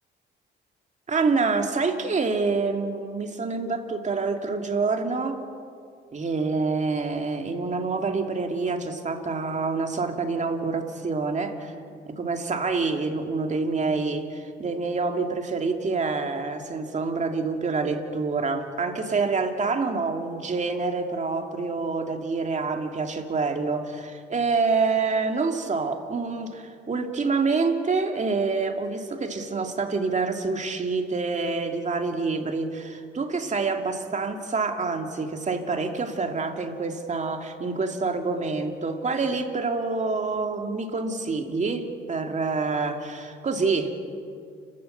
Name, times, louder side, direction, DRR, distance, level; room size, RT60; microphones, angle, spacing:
voice 1, 1.1-5.4 6.1-11.7 12.2-43.9, right 4 dB, 35° right, 4 dB, 2.5 m, -27 dB
30.0 x 13.5 x 8.0 m, 2.3 s
cardioid pair, 90°, 20 cm